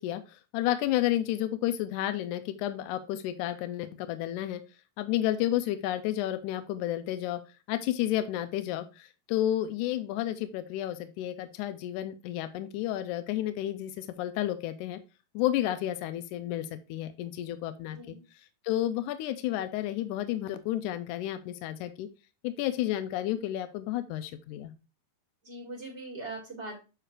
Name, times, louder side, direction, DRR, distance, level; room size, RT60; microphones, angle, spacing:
voice 1, 0.0-4.6 5.0-7.4 7.7-15.0 15.4-18.2 18.6-22.1 22.4-24.7, left 13 dB, 80° left, 9 dB, 1.8 m, -31 dB
voice 2, 17.9-18.2 25.4-26.8, right 2 dB, 25° right, -3 dB, 1.9 m, -41 dB
9.0 x 4.9 x 2.5 m, 0.30 s
omnidirectional pair, 4.1 m